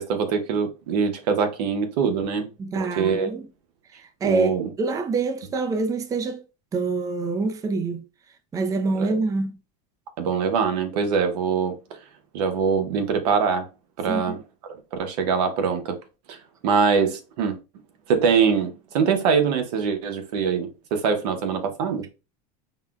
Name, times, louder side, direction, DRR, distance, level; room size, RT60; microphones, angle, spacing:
voice 1, 0.0-2.5 2.8-3.3 4.2-4.7 9.0-9.1 10.2-11.8 12.3-13.7 14.0-14.4 14.9-16.0 16.3-16.4 16.6-17.6 18.1-22.1, right 6 dB, 85° right, 0.9 m, -23 dB
voice 2, 2.6-3.5 3.9-4.5 4.8-6.5 6.7-8.0 8.5-9.6 14.1-14.3, right 3 dB, 15° right, 0.4 m, -26 dB
5.6 x 2.2 x 2.3 m
supercardioid pair, 125°, 20 cm